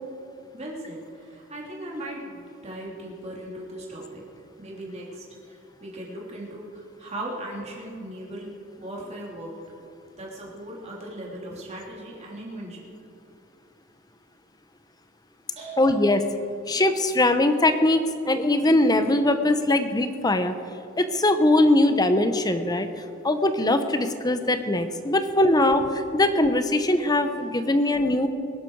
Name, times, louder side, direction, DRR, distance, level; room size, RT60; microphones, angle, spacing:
voice 1, 0.5-4.2 4.6-5.2 5.8-8.5 8.8-9.5 10.2-12.8 15.6-16.0 25.3-25.9, right 1 dB, 35° right, -4 dB, 3.0 m, -38 dB
voice 2, 15.8-16.2 16.7-20.5 21.0-22.9 23.2-25.8 26.1-28.3, left 1 dB, 20° left, 9 dB, 0.8 m, -21 dB
20.5 x 11.0 x 4.7 m, 2.5 s
head